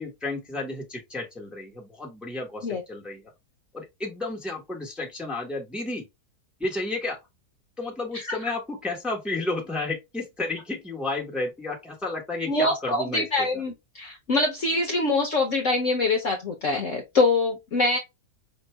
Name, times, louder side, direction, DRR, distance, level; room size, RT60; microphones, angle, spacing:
voice 1, 0.0-3.2 3.7-6.0 6.6-7.2 7.8-13.6, left 2 dB, ahead, 1.1 m, -32 dB
voice 2, 12.5-18.0, left 2 dB, 55° left, 1.0 m, -24 dB
5.3 x 2.6 x 3.2 m
omnidirectional pair, 2.0 m